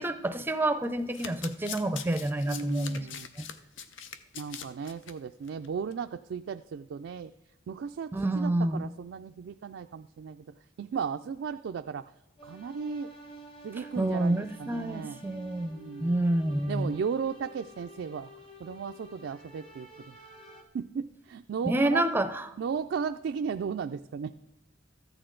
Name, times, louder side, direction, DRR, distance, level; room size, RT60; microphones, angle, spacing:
voice 1, 0.0-3.1 3.4-3.5 8.1-8.9 14.0-16.9 21.6-22.5, right 1 dB, 10° right, 10 dB, 0.5 m, -28 dB
Domestic sounds home sounds, 1.0-5.1 5.5-5.7 5.9-6.0, left 8 dB, 70° left, 0.6 m, -42 dB
voice 2, 2.5-3.3 4.3-7.3 7.7-12.1 12.4-13.1 13.6-15.2 15.7-16.2 16.7-18.3 18.6-20.2 20.7-22.0 22.6-24.3, right 6 dB, 70° right, 7 dB, 0.3 m, -35 dB
sound 1, 12.4-20.6, right 1 dB, 25° left, 1.4 m, -50 dB
13.5 x 8.8 x 3.8 m, 0.95 s
head